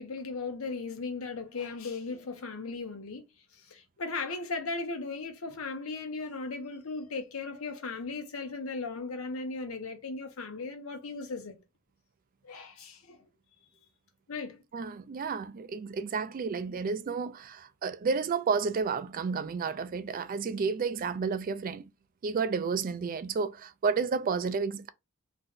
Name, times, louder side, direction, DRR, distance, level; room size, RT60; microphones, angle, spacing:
voice 1, 0.0-3.2 3.5-11.6 12.4-13.2 14.3-14.6, left 3 dB, 80° left, 0.8 m, -37 dB
voice 2, 14.7-21.8 22.2-24.9, right 5 dB, 40° right, 0.3 m, -31 dB
2.6 x 2.2 x 3.6 m
head